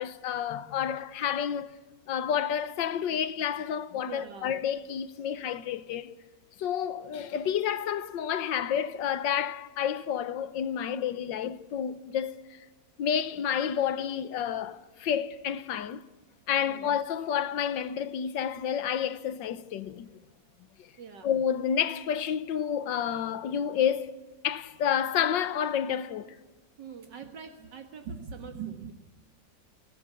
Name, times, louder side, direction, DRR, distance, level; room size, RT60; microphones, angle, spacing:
voice 1, 0.0-1.7 2.1-6.1 6.6-12.4 13.0-16.0 16.5-20.2 21.2-24.1 24.4-26.4, left 8 dB, 90° left, 1.6 m, -30 dB
voice 2, 4.1-4.6 16.6-16.9 21.0-21.3 26.8-28.9, right 6 dB, 75° right, 2.2 m, -42 dB
25.0 x 18.0 x 8.4 m
omnidirectional pair, 1.9 m